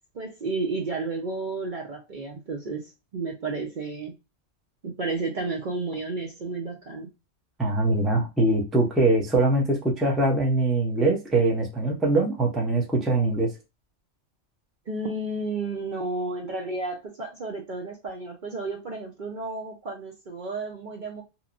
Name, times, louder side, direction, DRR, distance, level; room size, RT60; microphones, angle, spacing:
voice 1, 0.1-4.2 4.8-7.1 14.9-21.2, right 3 dB, 50° right, 0.7 m, -32 dB
voice 2, 7.6-13.5, right 2 dB, ahead, 0.5 m, -22 dB
2.9 x 2.2 x 2.4 m
omnidirectional pair, 1.3 m